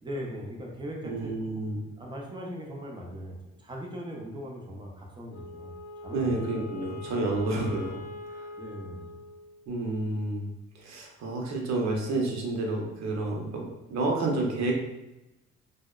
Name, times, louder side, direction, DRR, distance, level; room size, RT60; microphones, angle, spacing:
voice 1, 0.0-1.3 2.0-5.7 6.0-6.3 8.3-9.2, equal, 15° right, -1 dB, 0.5 m, -39 dB
voice 2, 1.0-1.9 6.1-8.0 8.3-8.5 9.7-10.5 10.7-14.7, right 2 dB, 65° right, 0 dB, 0.6 m, -30 dB
Wind instrument woodwind instrument, 5.3-9.7, left 2 dB, 65° left, 0.6 m, -42 dB
2.7 x 2.1 x 2.3 m, 0.97 s
cardioid pair, 90°, 30 cm